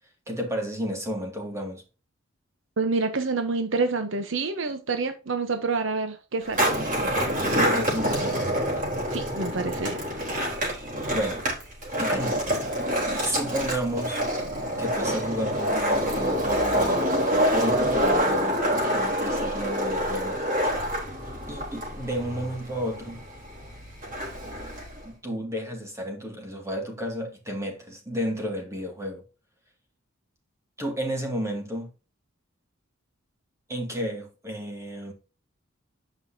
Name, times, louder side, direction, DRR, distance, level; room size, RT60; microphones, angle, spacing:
voice 1, 0.3-1.8 6.8-7.3 7.5-8.5 11.1-11.4 12.0-12.4 13.2-14.2 14.8-17.2 17.6-18.6 18.9-20.4 21.5-23.2 25.0-29.2 30.8-31.9 33.7-35.1, equal, 15° right, 2.3 m, -32 dB
voice 2, 2.8-6.7 9.1-10.0, right 3 dB, 75° right, 1.0 m, -27 dB
Skateboard, 6.4-25.1, equal, 40° right, 3.7 m, -27 dB
9.3 x 5.5 x 2.8 m
head